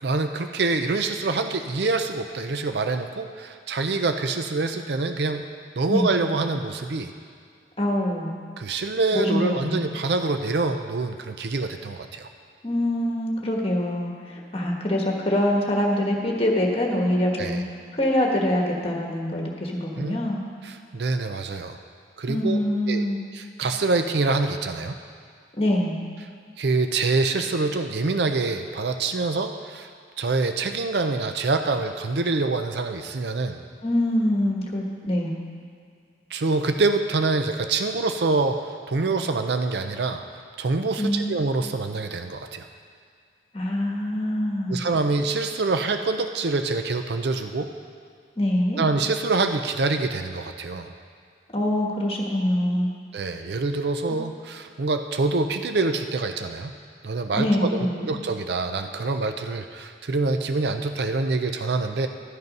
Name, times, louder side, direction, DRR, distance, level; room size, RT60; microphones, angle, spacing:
voice 1, 0.0-5.5 5.8-7.1 8.6-12.3 17.4-17.6 20.0-20.2 20.6-21.8 22.2-22.6 22.9-23.0 23.3-25.0 26.6-29.9 30.2-33.6 36.3-38.6 38.9-42.7 44.7-47.7 48.8-50.9 53.1-56.7 57.0-62.1, right 3 dB, 60° right, 7 dB, 0.5 m, -25 dB
voice 2, 7.8-8.4 9.1-9.8 12.6-17.6 17.9-20.4 22.3-23.2 25.5-26.0 33.8-35.4 41.0-41.4 43.5-44.8 48.4-48.8 51.5-52.9 57.4-58.1, left 1 dB, 30° left, 0 dB, 1.4 m, -24 dB
12.5 x 8.0 x 5.4 m, 2.2 s
head